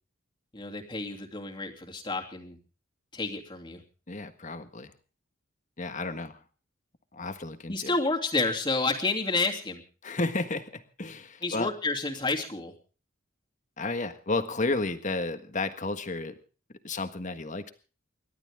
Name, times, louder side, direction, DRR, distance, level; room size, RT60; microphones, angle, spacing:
voice 1, 0.5-2.6 3.1-3.8 7.7-9.8 11.4-12.7, left 3 dB, 25° left, 1 dB, 2.8 m, -30 dB
voice 2, 4.1-4.9 5.8-6.4 7.1-7.9 10.0-11.7 13.8-16.4 16.8-17.7, left 2 dB, 40° left, 9 dB, 1.5 m, -32 dB
29.5 x 12.0 x 3.6 m, 0.37 s
head